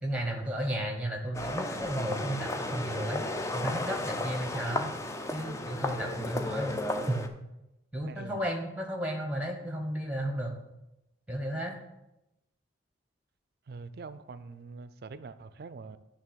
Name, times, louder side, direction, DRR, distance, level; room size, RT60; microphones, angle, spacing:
voice 1, 0.0-3.2 3.5-4.9 5.3-6.8 7.1-7.2 7.9-10.6 11.3-11.7, right 1 dB, 5° right, 1.1 m, -33 dB
sound 1, 1.3-7.3, left 2 dB, 15° left, 0.4 m, -34 dB
voice 2, 8.0-8.4 13.7-16.0, right 4 dB, 55° right, 0.4 m, -44 dB
9.0 x 3.3 x 6.3 m
head